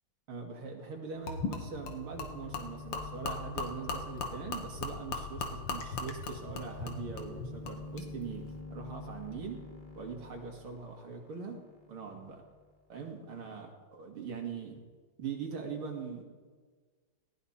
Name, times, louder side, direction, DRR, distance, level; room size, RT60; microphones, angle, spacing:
voice 1, 0.3-9.6 10.0-11.6 11.9-12.4 12.9-14.8 15.2-16.2, right 5 dB, 80° right, 1 dB, 3.1 m, -42 dB
Gurgling / Liquid, 1.3-8.1, left 4 dB, 85° left, 2.6 m, -39 dB
sound 1, 1.6-12.7, left 2 dB, 25° left, 1.7 m, -49 dB
19.0 x 16.5 x 4.3 m, 1.4 s
omnidirectional pair, 2.3 m